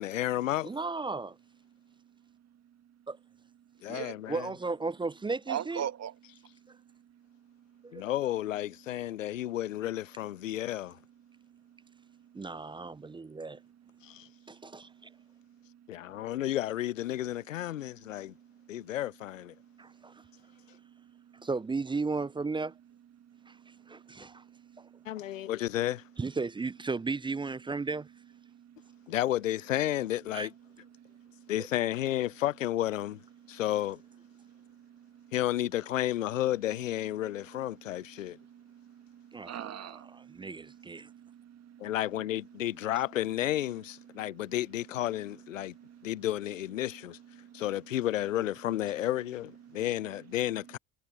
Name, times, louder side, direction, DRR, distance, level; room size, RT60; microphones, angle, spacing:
voice 1, 0.0-0.7 3.8-4.5 7.9-11.0 14.0-14.3 15.9-18.3 18.7-19.5 25.1-26.0 29.1-30.5 31.5-33.2 33.5-34.0 35.3-38.4 41.8-45.7 46.0-47.2 47.5-50.8, left 13 dB, 85° left, 0.6 m, -32 dB
voice 2, 0.6-1.4 3.1-3.2 4.3-5.8 7.8-8.0 12.3-13.6 14.5-14.9 19.8-20.1 21.4-22.7 23.5-23.6 23.9-24.4 26.2-28.1 30.3-30.5 39.3-41.1, right 3 dB, 15° right, 0.5 m, -35 dB
voice 3, 3.8-4.3 5.5-8.1 10.5-10.6 11.3-16.4 17.8-19.0 19.6-21.5 23.2-25.5 28.5-29.2 30.9-31.5 33.4-33.6 34.3-35.3 37.3-42.0 42.5-42.8 44.1-44.6 45.3-46.3 46.9-47.6 49.6-50.3, right 10 dB, 40° right, 1.7 m, -47 dB
hypercardioid pair, 60°, 38 cm